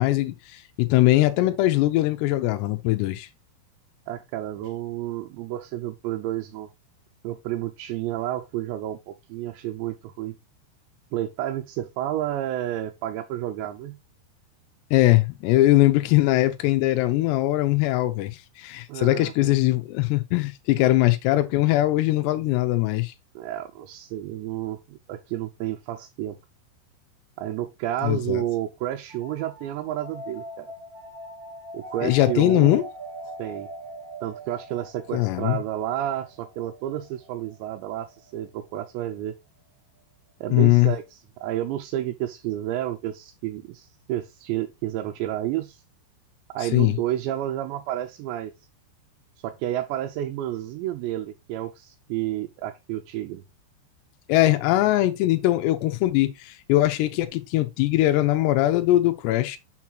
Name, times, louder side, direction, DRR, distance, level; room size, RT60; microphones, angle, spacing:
voice 1, 0.0-3.3 14.9-23.1 28.0-28.4 32.0-32.8 35.1-35.6 40.5-40.9 46.7-47.0 54.3-59.6, left 16 dB, 85° left, 2.4 m, -21 dB
voice 2, 4.1-6.7 7.2-10.4 11.1-14.0 18.9-19.5 23.4-26.4 27.4-30.7 31.7-32.8 33.4-33.7 34.2-39.4 40.4-45.8 46.5-48.5 49.4-53.4, right 13 dB, 85° right, 2.6 m, -30 dB
sound 1, 29.1-38.5, right 1 dB, 40° right, 1.7 m, -42 dB
6.6 x 6.0 x 2.9 m
omnidirectional pair, 5.6 m